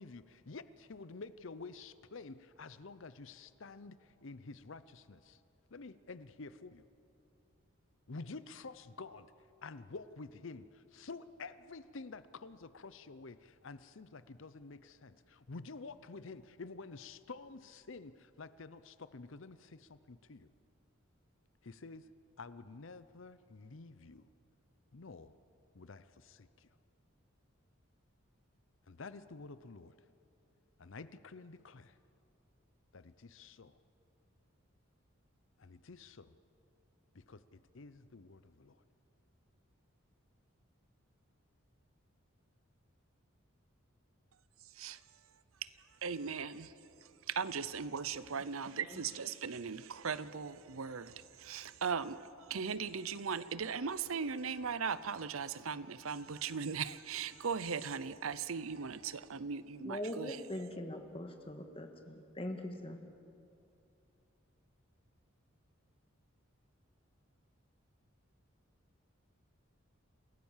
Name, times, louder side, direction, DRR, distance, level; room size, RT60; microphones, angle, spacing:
voice 1, 0.0-5.4 5.7-6.8 8.1-9.3 9.6-20.5 21.6-22.1 22.4-24.3 24.9-25.3 25.7-26.7 28.9-29.9 30.8-32.0 32.9-33.8 35.6-36.4 37.1-38.8, left 3 dB, 65° left, 14 dB, 0.7 m, -50 dB
voice 2, 46.0-46.7 47.0-60.4, right 6 dB, 80° right, 16 dB, 0.7 m, -38 dB
voice 3, 59.8-63.0, left 1 dB, 25° left, 5 dB, 1.7 m, -42 dB
28.0 x 16.5 x 7.4 m, 2.6 s
head